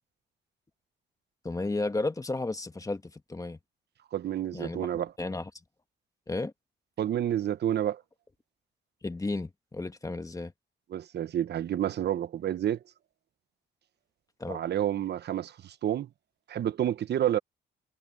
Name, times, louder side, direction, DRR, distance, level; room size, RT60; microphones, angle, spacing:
voice 1, 1.4-3.6 4.5-4.9 5.2-5.5 6.3-6.5 9.0-10.5 14.4-14.6, left 2 dB, 15° left, 1.6 m, -33 dB
voice 2, 4.1-5.1 7.0-8.0 10.9-12.8 14.5-16.1 16.5-17.4, right 11 dB, 60° right, 0.9 m, -29 dB
cardioid pair, 90°, 20 cm